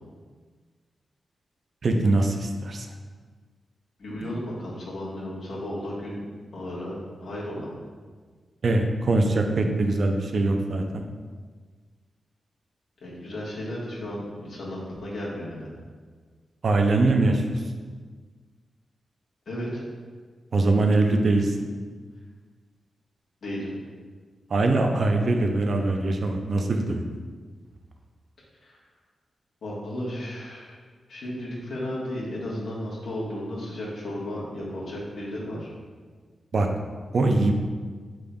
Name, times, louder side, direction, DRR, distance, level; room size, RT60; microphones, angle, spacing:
voice 1, 1.8-2.9 4.2-4.3 8.6-11.0 16.6-17.6 20.5-21.6 24.5-27.0 36.5-36.7 37.1-37.5, right 2 dB, 55° right, 4 dB, 0.4 m, -22 dB
voice 2, 4.0-6.2 6.5-6.9 7.2-7.7 13.0-15.7 19.5-19.8 23.4-23.7 28.6-28.8 29.6-30.7 31.1-35.7, left 1 dB, 70° left, -7 dB, 1.3 m, -34 dB
5.1 x 3.6 x 2.3 m, 1.5 s
wide cardioid pair, 120°, 0 cm